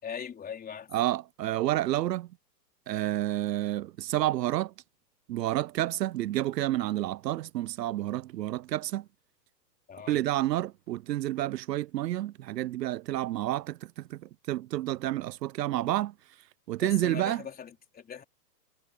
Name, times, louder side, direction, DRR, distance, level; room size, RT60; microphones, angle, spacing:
voice 1, 0.0-0.9 9.9-10.2 16.8-18.2, left 7 dB, 20° left, 4.3 m, -40 dB
voice 2, 0.9-2.3 2.9-4.7 5.3-9.0 10.1-14.2 14.5-16.1 16.7-17.4, right 14 dB, 75° right, 0.7 m, -29 dB
hypercardioid pair, 125°, 50 cm